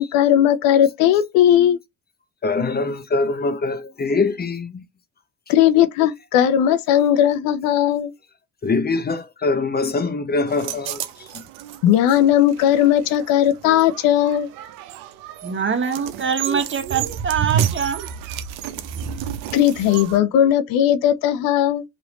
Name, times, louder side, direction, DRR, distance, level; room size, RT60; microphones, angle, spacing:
voice 1, 0.0-1.8 5.5-8.1 11.8-14.5 19.5-21.8, left 11 dB, 85° left, 0.5 m, -17 dB
voice 2, 2.4-4.8 8.6-11.4, left 3 dB, 30° left, 0.6 m, -23 dB
sound 1, 10.5-20.2, right 9 dB, 80° right, 0.6 m, -30 dB
voice 3, 15.4-18.0, right 6 dB, 35° right, 1.1 m, -24 dB
3.1 x 2.6 x 2.9 m
supercardioid pair, 60°, 33 cm